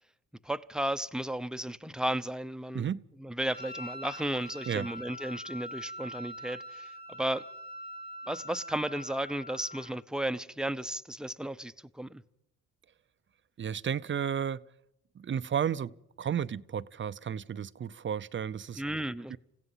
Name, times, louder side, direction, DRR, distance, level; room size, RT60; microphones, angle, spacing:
voice 1, 0.4-2.9 3.2-7.4 8.3-12.2 18.8-19.4, right 1 dB, ahead, 0.9 m, -34 dB
Wind instrument woodwind instrument, 3.4-10.0, equal, 30° left, 3.0 m, -44 dB
voice 2, 13.6-14.6 15.2-18.8 19.3-19.4, right 8 dB, 40° right, 0.7 m, -33 dB
29.0 x 16.0 x 5.7 m
cardioid pair, 90°, 30 cm